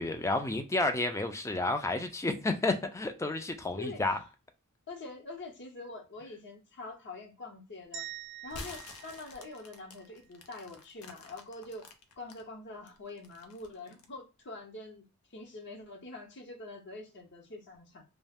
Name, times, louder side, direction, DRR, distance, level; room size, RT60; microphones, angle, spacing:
voice 1, 0.0-4.2, left 2 dB, 15° left, 0.4 m, -31 dB
voice 2, 4.9-8.1 8.4-11.9 12.2-15.1 15.3-18.0, left 3 dB, 55° left, 0.8 m, -45 dB
sound 1, 7.9-10.2, right 10 dB, 55° right, 0.5 m, -46 dB
sound 2, 8.4-12.4 12.9-14.2, left 3 dB, 85° left, 0.6 m, -48 dB
2.3 x 2.0 x 3.4 m
head